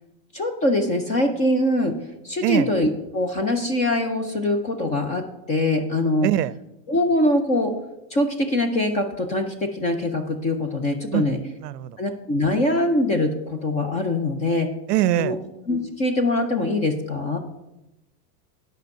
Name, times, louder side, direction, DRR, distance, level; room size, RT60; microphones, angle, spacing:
voice 1, 0.3-2.0 2.2-6.3 6.9-7.7 8.1-11.4 12.0-14.7 15.2-15.4 15.7-17.4, left 1 dB, 15° left, 0.3 m, -23 dB
voice 2, 11.6-12.0 14.9-15.4, right 13 dB, 75° right, 0.6 m, -22 dB
9.3 x 5.4 x 6.4 m
supercardioid pair, 135°, 49 cm